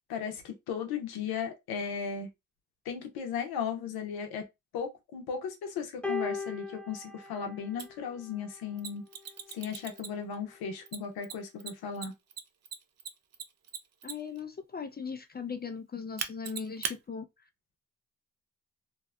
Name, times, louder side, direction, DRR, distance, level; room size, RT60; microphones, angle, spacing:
voice 1, 0.1-2.3 2.9-4.4 4.7-9.0 9.5-12.1, left 6 dB, 90° left, 0.7 m, -36 dB
sound 1, 6.0-8.5 9.5-9.7, left 4 dB, 5° left, 0.8 m, -38 dB
Mechanisms, 7.8-7.9 8.8-10.3 10.9-14.4 16.2-17.0, right 7 dB, 45° right, 0.5 m, -38 dB
voice 2, 14.0-17.2, left 6 dB, 30° left, 0.4 m, -38 dB
2.6 x 2.1 x 2.3 m
supercardioid pair, 45°, 36 cm